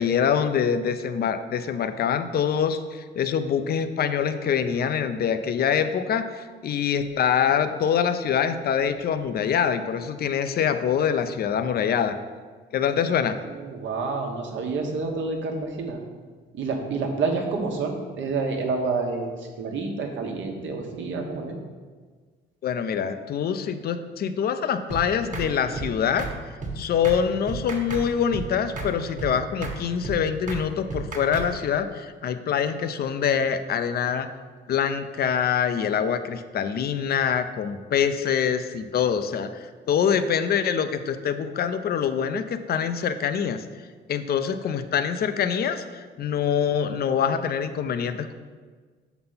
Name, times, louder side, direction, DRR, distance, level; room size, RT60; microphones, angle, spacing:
voice 1, 0.0-12.2 12.7-13.4 22.6-26.3 26.8-34.3 34.7-43.6 44.1-48.3, left 7 dB, 50° left, 10 dB, 0.5 m, -25 dB
voice 2, 12.9-16.0 16.5-21.5, right 4 dB, 75° right, 2 dB, 1.2 m, -29 dB
sound 1, 24.9-25.0 25.3-25.5 25.7-25.9 26.2-26.3 26.6-26.7 27.0-27.2 27.5-28.0 28.3-28.5 28.8-28.9 29.2-29.3 29.6-29.8 30.0-30.2 30.5-30.6 30.9-31.5, right 4 dB, 40° right, 1.4 m, -32 dB
6.5 x 4.0 x 5.6 m, 1.5 s
cardioid pair, 90°, 20 cm